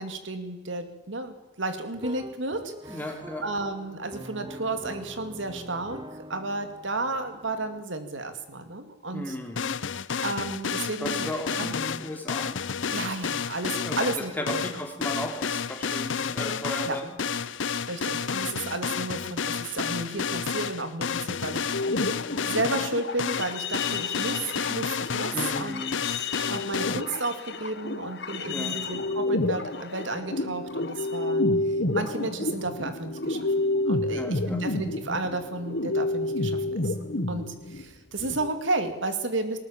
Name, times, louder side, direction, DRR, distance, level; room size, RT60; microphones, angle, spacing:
voice 1, 0.0-3.0 3.4-6.0 6.3-9.4 10.2-11.3 11.6-11.7 12.8-14.6 16.9-17.0 17.9-21.7 22.5-25.8 26.5-31.4 31.9-33.5 33.9-36.9 37.3-39.6, right 2 dB, 80° right, 8 dB, 2.5 m, -32 dB
sound 1, 1.9-7.8, right 1 dB, 25° right, 0.8 m, -44 dB
voice 2, 2.9-3.4 9.1-9.8 11.0-12.6 13.8-17.1 17.4-17.6 25.3-26.0 28.5-28.8 34.1-34.6, left 1 dB, 10° left, 3 dB, 3.5 m, -35 dB
sound 2, 9.6-27.0, left 6 dB, 80° left, 0.7 m, -31 dB
sound 3, 21.7-37.8 38.2-38.5, left 2 dB, 60° left, 1.7 m, -30 dB
20.5 x 19.0 x 7.3 m, 1.1 s
head